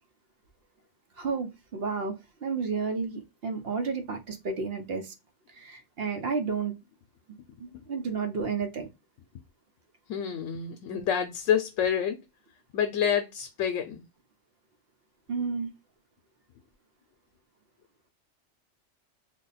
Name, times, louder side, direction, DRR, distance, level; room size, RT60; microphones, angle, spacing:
voice 1, 1.2-2.1 2.4-5.1 5.5-6.7 7.6-8.9 15.3-15.7, right 5 dB, 60° right, 0.9 m, -31 dB
voice 2, 10.1-12.2 12.7-14.0, left 8 dB, 85° left, 0.9 m, -28 dB
3.4 x 2.2 x 4.0 m
omnidirectional pair, 1.2 m